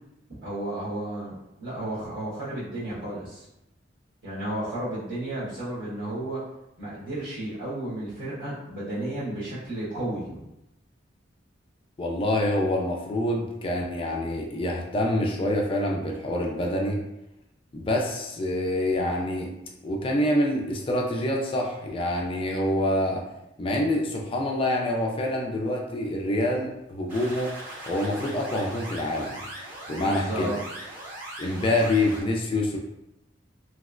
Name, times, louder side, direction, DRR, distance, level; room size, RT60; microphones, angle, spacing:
voice 1, 0.4-3.4 4.2-6.4 6.8-10.5 30.0-30.5, right 1 dB, 80° right, -10 dB, 1.1 m, -33 dB
voice 2, 12.0-17.0 17.7-19.5 19.8-23.2 23.6-27.5 27.9-29.4 29.9-30.5 31.4-32.8, left 1 dB, 30° left, 0 dB, 0.3 m, -26 dB
sound 1, 27.1-32.2, right 1 dB, 45° right, 1.1 m, -40 dB
3.2 x 2.9 x 2.4 m, 0.88 s
head